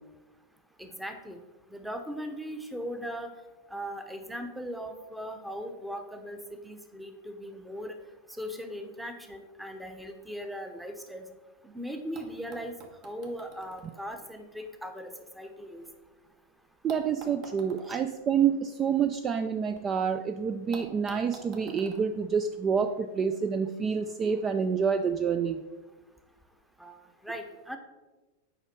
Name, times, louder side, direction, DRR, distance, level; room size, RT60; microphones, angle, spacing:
voice 1, 0.8-1.4 1.7-3.3 3.7-8.0 8.4-11.3 11.6-12.7 13.0-15.1 15.4-15.8 17.9-18.0 26.8-27.0 27.2-27.8, equal, 5° right, 6 dB, 0.9 m, -39 dB
sound 1, 12.1-16.2 16.9-19.8 20.1-20.2 20.7-23.1 24.1-24.2, right 3 dB, 45° right, 1.4 m, -51 dB
voice 2, 16.8-25.6, right 6 dB, 30° right, 8 dB, 0.4 m, -28 dB
8.0 x 5.0 x 4.5 m, 1.2 s
hypercardioid pair, 95°, 0 cm